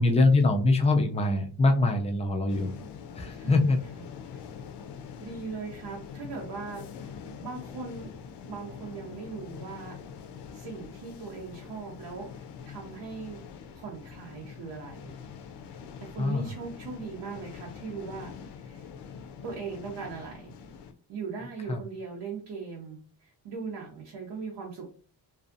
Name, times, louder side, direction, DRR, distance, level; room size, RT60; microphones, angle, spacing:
voice 1, 0.0-2.7 3.2-3.8 16.2-16.5 21.7-21.8, left 2 dB, 15° left, 4 dB, 0.3 m, -23 dB
sound 1, 2.5-20.9, left 6 dB, 75° left, 0.5 m, -44 dB
voice 2, 3.3-4.0 4.3-4.4 5.2-7.1 7.4-8.1 8.5-10.0 10.5-13.4 13.7-15.1 16.0-18.8 19.4-20.5 21.1-24.9, right 5 dB, 85° right, -1 dB, 0.8 m, -40 dB
2.5 x 2.3 x 2.5 m, 0.43 s
wide cardioid pair, 150°, 41 cm